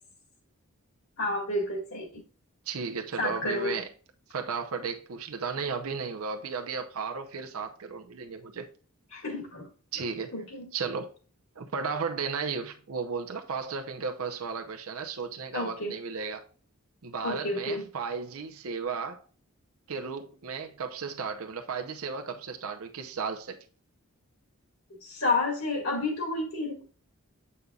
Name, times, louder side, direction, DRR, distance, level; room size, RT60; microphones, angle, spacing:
voice 1, 1.2-2.2 3.2-3.7 9.1-9.7 10.3-10.7 15.5-15.9 17.2-17.8 25.0-26.8, left 2 dB, 70° left, 1.9 m, -30 dB
voice 2, 2.7-3.9 4.3-8.7 9.9-10.3 10.7-11.1 11.6-16.4 17.0-19.2 19.9-23.6, right 5 dB, 75° right, 0.7 m, -34 dB
8.1 x 5.5 x 2.3 m
head